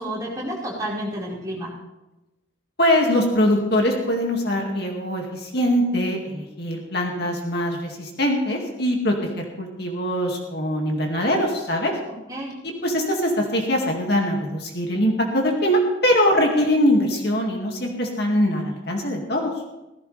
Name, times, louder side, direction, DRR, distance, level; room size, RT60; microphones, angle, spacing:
voice 1, 0.0-1.7 12.1-12.5, equal, 20° right, -6 dB, 4.9 m, -30 dB
voice 2, 2.8-5.2 5.5-9.1 9.6-11.9 12.6-19.5, equal, 55° left, 1 dB, 2.3 m, -22 dB
17.0 x 15.5 x 3.4 m, 0.98 s
head